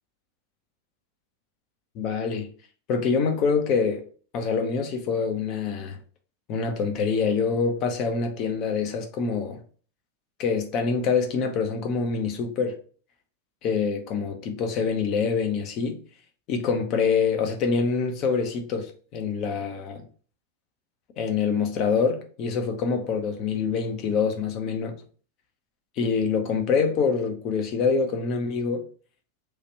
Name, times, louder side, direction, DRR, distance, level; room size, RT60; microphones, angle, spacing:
voice 1, 1.9-2.5 2.9-4.0 4.3-6.0 6.5-9.6 10.4-12.8 13.6-16.0 16.5-20.0 21.2-24.9 26.0-28.8, left 5 dB, 40° left, 0.7 m, -25 dB
3.2 x 2.4 x 4.2 m
figure-of-eight pair, 90°, 0 cm